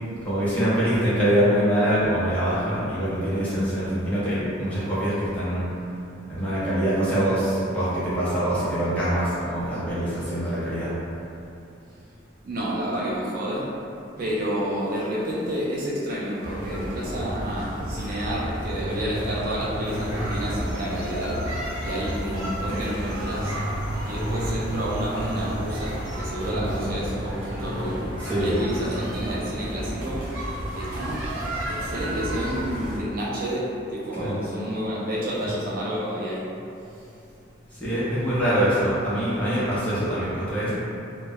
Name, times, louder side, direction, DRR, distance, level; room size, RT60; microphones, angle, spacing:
voice 1, 0.2-5.6 6.3-11.0 26.5-26.9 27.6-27.8 28.2-28.5 34.1-34.5 37.8-40.7, equal, 5° left, -11 dB, 0.6 m, -24 dB
voice 2, 12.4-13.6 14.2-21.4 21.8-23.6 24.1-28.0 28.4-30.2 30.7-31.2 31.7-36.4, equal, 45° right, -6 dB, 0.4 m, -29 dB
sound 1, 16.4-33.0, equal, 90° right, 0.8 m, -31 dB
sound 2, 19.9-26.2, left 1 dB, 55° left, 0.4 m, -41 dB
2.1 x 2.0 x 3.4 m, 2.7 s
head